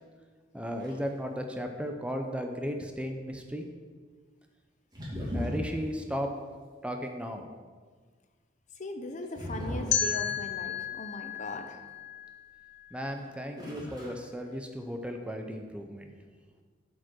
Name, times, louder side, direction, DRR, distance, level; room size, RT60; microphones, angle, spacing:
voice 1, 0.5-3.7 5.3-6.3 6.8-7.5 12.9-16.1, equal, 5° right, 4 dB, 0.6 m, -35 dB
sound 1, 0.8-1.1 4.9-5.9 9.4-10.5 13.1-13.3 13.6-14.2 14.4-15.0, equal, 25° right, 2.5 m, -36 dB
voice 2, 8.8-11.8, left 2 dB, 40° left, 7 dB, 0.7 m, -39 dB
sound 2, 9.9-12.9, left 8 dB, 75° left, 0.8 m, -33 dB
8.0 x 5.2 x 6.2 m, 1.5 s
head